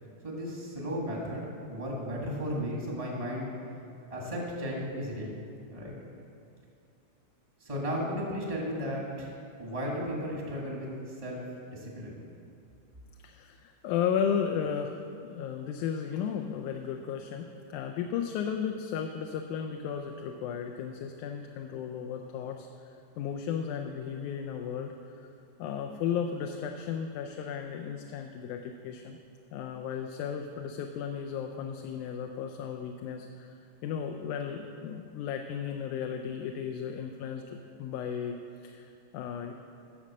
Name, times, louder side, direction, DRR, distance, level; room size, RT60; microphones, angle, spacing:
voice 1, 0.2-3.5 4.1-5.4 5.7-5.9 7.6-11.4 11.7-12.2, equal, 20° right, -2 dB, 0.9 m, -35 dB
voice 2, 13.2-22.9 23.2-24.9 25.6-29.2 29.5-33.5 33.8-39.5, left 7 dB, 80° left, 4 dB, 2.0 m, -34 dB
11.0 x 6.4 x 7.3 m, 2.5 s
omnidirectional pair, 3.6 m